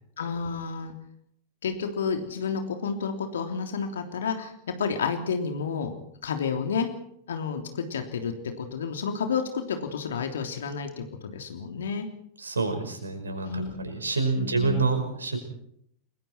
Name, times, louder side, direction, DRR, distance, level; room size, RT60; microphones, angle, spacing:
voice 1, 0.2-0.9 1.6-4.5 4.8-5.9 6.2-6.9 7.3-12.1 13.5-13.7 14.4-14.8, left 6 dB, 65° left, 5 dB, 3.2 m, -30 dB
voice 2, 12.4-15.4, right 3 dB, 75° right, 7 dB, 5.2 m, -27 dB
30.0 x 21.0 x 4.6 m, 0.70 s
figure-of-eight pair, 90°, 0 cm